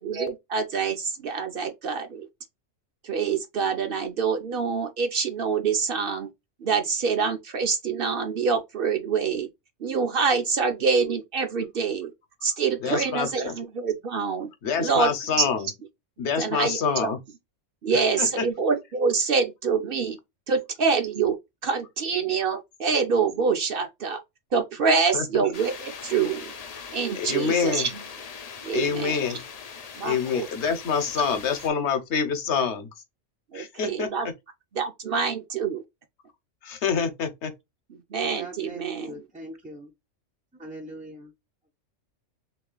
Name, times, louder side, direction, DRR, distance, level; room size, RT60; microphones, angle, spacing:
voice 1, 0.0-2.3 3.0-6.3 6.6-9.5 9.8-12.1 12.4-14.5 14.8-15.4 16.4-17.1 17.8-20.2 20.5-21.4 21.6-24.2 24.5-26.5 26.9-28.0 28.6-29.3 30.0-30.5 33.5-34.3 34.7-35.8 38.1-39.1, right 5 dB, 55° right, 0.8 m, -26 dB
voice 2, 12.8-13.5 14.6-15.7 16.2-17.2 17.9-18.3 25.1-25.2 27.2-27.9 28.7-29.4 30.0-32.9 33.5-34.1 36.6-37.5, left 6 dB, 65° left, 1.1 m, -26 dB
sound 1, 25.5-31.7, left 6 dB, 50° left, 0.5 m, -41 dB
voice 3, 38.2-39.9 40.5-41.3, right 1 dB, 15° right, 0.3 m, -41 dB
3.2 x 3.0 x 3.7 m
omnidirectional pair, 1.3 m